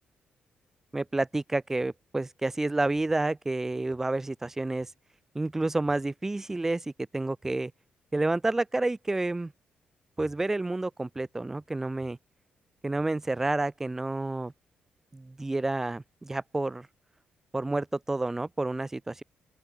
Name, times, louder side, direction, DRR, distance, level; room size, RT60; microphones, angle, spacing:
voice 1, 0.9-4.9 5.3-7.7 8.1-9.5 10.2-12.2 12.8-14.5 15.1-16.9 17.5-19.2, right 2 dB, 10° right, 0.6 m, -29 dB
open air
wide cardioid pair, 160°, 3 cm